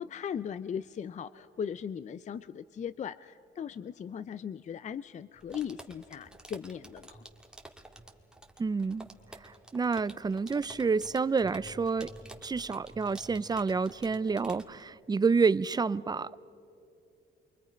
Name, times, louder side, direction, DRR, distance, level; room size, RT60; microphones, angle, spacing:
voice 1, 0.0-7.2, left 8 dB, 35° left, 15 dB, 0.4 m, -38 dB
sound 1, 5.4-14.8, right 1 dB, 5° right, 1.7 m, -50 dB
voice 2, 8.6-9.1 9.4-12.1 12.4-16.4, right 4 dB, 20° right, 17 dB, 0.5 m, -29 dB
28.0 x 23.5 x 5.1 m, 2.6 s
cardioid pair, 90°, 20 cm